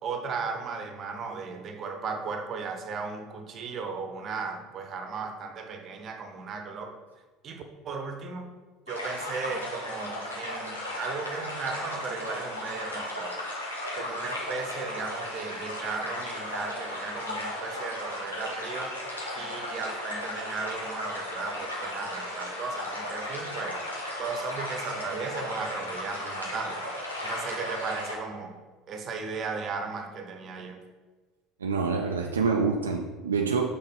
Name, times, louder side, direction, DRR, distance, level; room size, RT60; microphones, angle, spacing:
voice 1, 0.0-7.0 7.4-8.5 8.9-13.4 13.9-19.0 19.3-23.8 24.2-26.9 27.2-28.6 28.9-30.8, right 4 dB, 40° right, 5 dB, 0.9 m, -36 dB
Fish Release, 8.9-28.2, left 1 dB, 90° left, 1.2 m, -35 dB
voice 2, 31.6-33.8, right 5 dB, 80° right, 3 dB, 0.4 m, -26 dB
5.7 x 3.9 x 5.4 m, 1.4 s
figure-of-eight pair, 65°, 0 cm